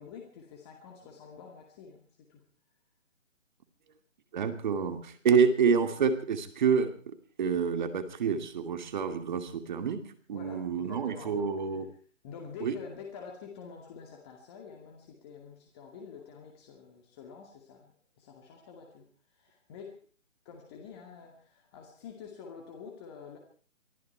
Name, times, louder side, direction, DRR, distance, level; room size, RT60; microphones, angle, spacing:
voice 1, 0.0-2.4 10.3-11.6 12.2-19.1 19.4-20.0 20.5-23.4, left 6 dB, 20° left, 1 dB, 2.3 m, -47 dB
voice 2, 4.3-10.0 10.3-11.9 12.6-12.7, right 6 dB, 40° right, 8 dB, 2.5 m, -28 dB
24.0 x 13.0 x 4.6 m, 0.43 s
hypercardioid pair, 160°, 38 cm